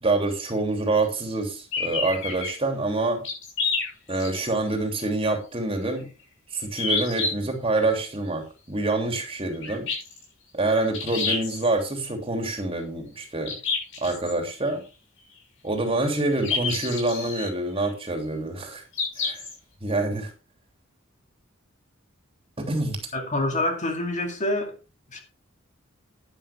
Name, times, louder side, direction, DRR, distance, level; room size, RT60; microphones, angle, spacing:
voice 1, 0.0-3.2 4.1-6.1 6.5-9.9 10.5-13.6 14.0-14.8 15.6-18.8 19.2-19.4 19.8-20.3 22.6-23.0, right 2 dB, 30° right, 3.1 m, -26 dB
sound 1, 1.7-2.5 3.2-4.6 5.0-5.1 6.8-7.3 9.6-10.2 10.9-11.7 13.5-14.3 16.4-17.5 18.9-19.5, left 4 dB, 65° left, 6.5 m, -28 dB
voice 2, 23.1-24.8 25.1-25.2, left 1 dB, 35° left, 2.3 m, -26 dB
11.5 x 10.5 x 3.6 m
head